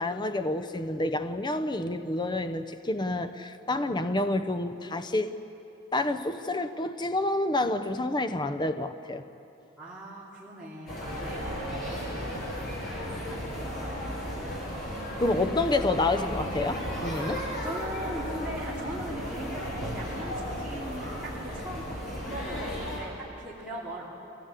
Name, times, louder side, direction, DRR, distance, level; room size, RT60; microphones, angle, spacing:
voice 1, 0.0-5.4 5.9-9.2 15.2-17.5, left 2 dB, 25° left, 9 dB, 0.7 m, -28 dB
voice 2, 9.8-12.3 13.2-14.0 17.6-24.2, right 1 dB, 5° right, -9 dB, 2.7 m, -40 dB
sound 1, 10.9-23.0, equal, 50° left, 7.5 m, -34 dB
25.5 x 17.5 x 8.4 m, 2.9 s
head